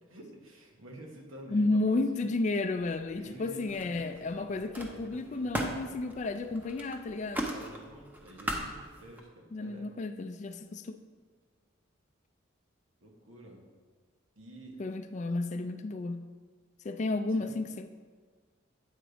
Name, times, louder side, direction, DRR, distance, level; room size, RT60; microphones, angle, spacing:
voice 1, 0.0-2.3 3.2-5.6 7.4-9.9 13.0-13.6 14.3-14.8 17.3-17.6, right 1 dB, 80° right, 1 dB, 1.2 m, -50 dB
voice 2, 1.5-7.5 9.5-10.9 14.8-16.2 16.8-17.9, left 2 dB, 35° left, 9 dB, 0.3 m, -32 dB
Camera, 2.8-3.4 3.7-9.2, right 1 dB, 10° right, 0.6 m, -39 dB
8.8 x 4.0 x 4.9 m, 1.5 s
head